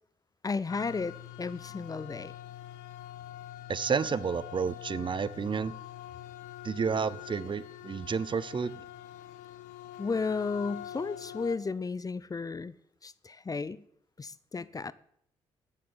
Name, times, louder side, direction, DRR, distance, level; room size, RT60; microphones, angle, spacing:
voice 1, 0.4-2.3 10.0-12.7 13.0-13.8 14.2-14.9, left 4 dB, 30° left, 0.6 m, -33 dB
sound 1, 0.7-11.6, left 12 dB, 85° left, 0.8 m, -45 dB
voice 2, 3.7-5.7 6.6-8.8, right 6 dB, 40° right, 0.6 m, -30 dB
10.0 x 7.5 x 8.9 m
hypercardioid pair, 50°, 12 cm